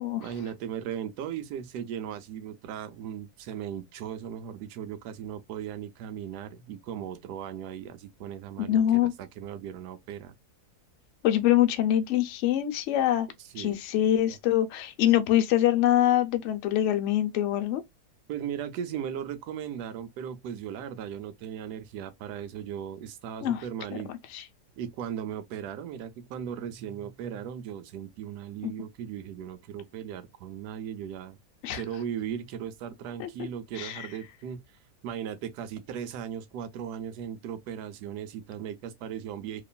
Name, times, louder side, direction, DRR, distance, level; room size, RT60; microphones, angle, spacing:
voice 1, 0.2-10.3 13.5-13.8 14.3-14.4 18.3-24.1 24.8-31.4 31.7-34.6 35.0-39.6, right 9 dB, 90° right, 1.1 m, -37 dB
voice 2, 8.6-9.1 11.2-13.3 13.6-17.8 23.4-23.6 24.3-24.4 28.6-28.7 31.6-31.8 33.2-33.3 33.8-34.1, left 12 dB, 65° left, 0.7 m, -24 dB
2.9 x 2.4 x 2.2 m
omnidirectional pair, 1.7 m